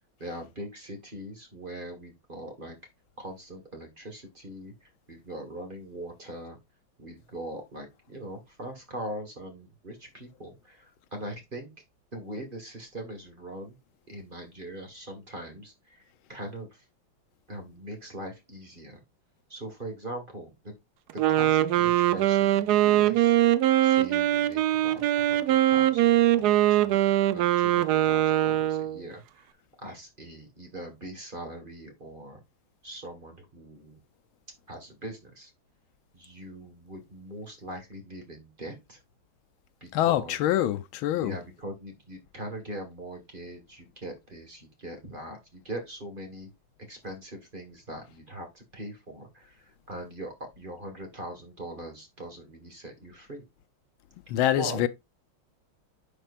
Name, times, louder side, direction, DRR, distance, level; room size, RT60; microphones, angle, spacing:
voice 1, 0.2-2.8 3.2-6.6 7.0-11.7 12.1-13.8 14.1-16.0 16.3-16.8 17.5-19.0 19.5-20.5 21.1-23.4 23.8-29.5 29.8-32.4 32.8-34.0 34.7-35.5 36.1-39.0 39.8-40.4 41.1-46.5 46.9-53.4 54.5-54.8, right 1 dB, 25° right, 1.6 m, -41 dB
Wind instrument woodwind instrument, 21.1-29.0, right 13 dB, 75° right, 0.9 m, -22 dB
voice 2, 39.9-41.4 54.3-54.9, left 12 dB, 85° left, 1.5 m, -25 dB
10.0 x 4.4 x 2.5 m
omnidirectional pair, 2.2 m